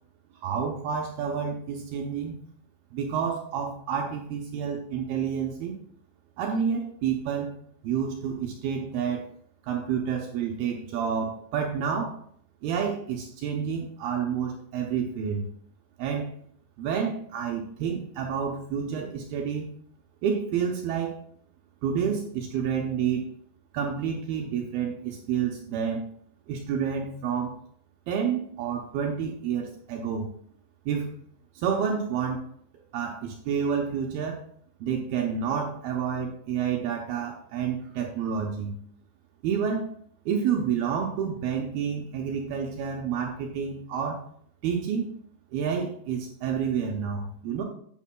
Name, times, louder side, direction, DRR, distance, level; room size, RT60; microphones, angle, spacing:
voice 1, 0.4-2.4 2.9-5.8 6.4-9.3 9.7-12.2 12.6-15.5 16.0-16.3 16.8-19.7 20.2-21.2 21.8-23.2 23.7-26.1 26.5-27.6 28.1-30.3 30.9-31.2 31.6-32.5 32.9-34.4 34.8-38.8 39.4-39.9 40.3-44.3 44.6-45.1 45.5-47.6, right 7 dB, 80° right, 1 dB, 2.2 m, -29 dB
11.5 x 8.2 x 2.2 m, 0.63 s
omnidirectional pair, 5.3 m